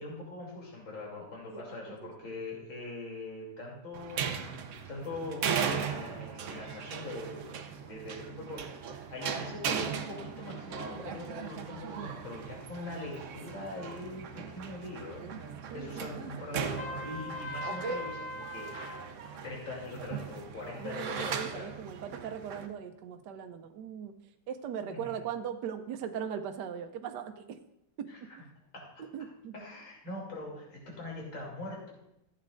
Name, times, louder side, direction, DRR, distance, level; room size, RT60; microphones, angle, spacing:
voice 1, 0.0-15.3 15.7-19.0 19.4-21.7 24.9-25.1 28.1-28.4 28.7-29.0 29.5-31.9, left 2 dB, 65° left, -3 dB, 3.7 m, -42 dB
sound 1, 3.9-22.7, right 7 dB, 85° right, 0.6 m, -38 dB
voice 2, 15.7-16.3 20.8-24.1 24.5-27.6 28.0-28.1 28.4-28.5 29.1-29.5, right 8 dB, 70° right, 6 dB, 1.1 m, -39 dB
Trumpet, 16.8-19.0, left 2 dB, 25° left, 0.6 m, -40 dB
14.5 x 8.4 x 2.6 m, 0.81 s
omnidirectional pair, 2.3 m